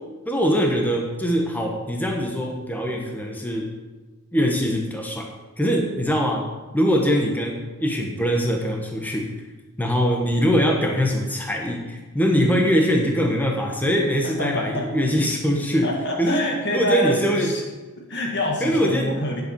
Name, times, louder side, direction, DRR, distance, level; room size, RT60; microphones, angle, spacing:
voice 1, 0.3-3.7 4.3-5.3 5.6-6.5 6.7-9.3 9.8-15.9 16.2-16.4 16.7-17.5 18.6-19.2, equal, 10° left, 1 dB, 1.1 m, -22 dB
voice 2, 14.2-14.8 15.8-17.6 18.0-19.4, left 1 dB, 55° left, 0 dB, 1.9 m, -26 dB
9.7 x 7.4 x 6.8 m, 1.2 s
head